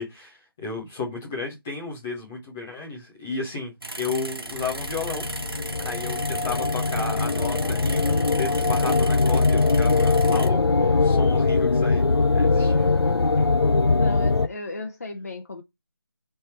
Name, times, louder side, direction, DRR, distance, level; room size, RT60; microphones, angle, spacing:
voice 1, 0.0-5.2 5.8-12.1 12.3-12.9 13.4-13.5, left 4 dB, 5° left, 0.6 m, -33 dB
sound 1, 3.8-10.5, right 2 dB, 75° right, 1.3 m, -37 dB
sound 2, 4.6-14.5, left 3 dB, 85° left, 0.6 m, -21 dB
voice 2, 14.0-15.6, left 2 dB, 40° left, 0.9 m, -35 dB
8.0 x 3.4 x 4.3 m
figure-of-eight pair, 170°, 13 cm